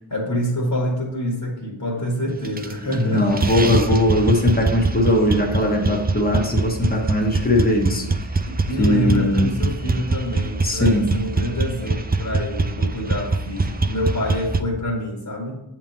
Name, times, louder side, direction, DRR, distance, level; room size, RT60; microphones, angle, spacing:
voice 1, 0.1-3.4 8.5-15.6, equal, 45° left, -2 dB, 1.6 m, -26 dB
sound 1, 2.4-3.0 3.3-14.6, right 3 dB, 20° right, 0.4 m, -23 dB
voice 2, 3.0-8.1 8.8-9.6 10.6-11.1, left 1 dB, 20° left, 1 dB, 1.1 m, -19 dB
7.9 x 3.0 x 5.3 m, 0.90 s
wide cardioid pair, 55°, 48 cm